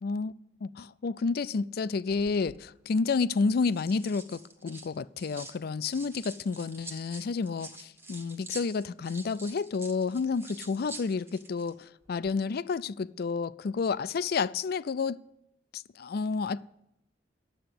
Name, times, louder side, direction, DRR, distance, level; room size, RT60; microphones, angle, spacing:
voice 1, 0.0-0.3 0.6-15.2 15.7-16.6, left 4 dB, 55° left, 0.4 m, -30 dB
sound 1, 2.1-2.6 3.5-5.6 5.9-11.7 12.0-12.3, right 2 dB, 15° right, 1.1 m, -47 dB
11.0 x 7.8 x 9.6 m
head